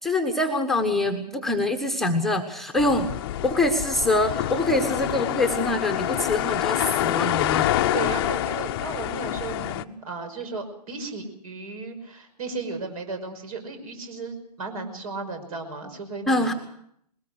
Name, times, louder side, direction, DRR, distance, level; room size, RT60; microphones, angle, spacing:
voice 1, 0.0-3.1 3.4-7.8 16.3-16.5, left 2 dB, ahead, 3 dB, 1.2 m, -24 dB
sound 1, 2.8-9.8, left 13 dB, 35° left, 0.8 m, -26 dB
voice 2, 7.9-16.6, right 3 dB, 60° right, 7 dB, 5.5 m, -35 dB
21.5 x 19.0 x 6.5 m, 0.71 s
hypercardioid pair, 130°, 21 cm